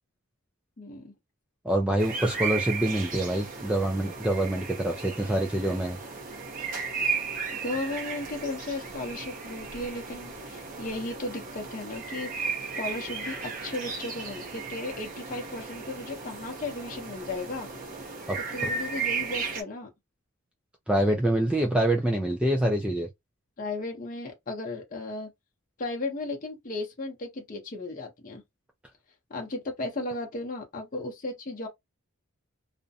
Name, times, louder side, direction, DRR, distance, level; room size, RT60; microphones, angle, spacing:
voice 1, 0.8-1.1 7.6-12.5 12.8-17.7 18.5-19.9 23.6-25.3 25.8-28.4 29.3-31.7, left 2 dB, 40° left, 0.7 m, -35 dB
voice 2, 1.6-6.0 18.3-18.7 20.9-23.1, right 1 dB, 5° right, 0.3 m, -26 dB
sound 1, 2.0-19.6, right 4 dB, 40° right, 0.7 m, -35 dB
2.4 x 2.1 x 2.7 m
head